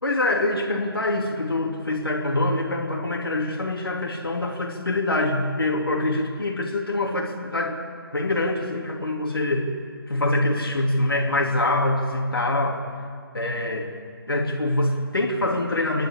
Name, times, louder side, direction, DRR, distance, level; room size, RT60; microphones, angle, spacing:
voice 1, 0.0-7.8 8.1-9.7 10.1-12.8 13.3-13.9 14.3-16.1, left 2 dB, 70° left, 0 dB, 3.0 m, -24 dB
28.0 x 11.5 x 8.7 m, 2.2 s
figure-of-eight pair, 155°, 13 cm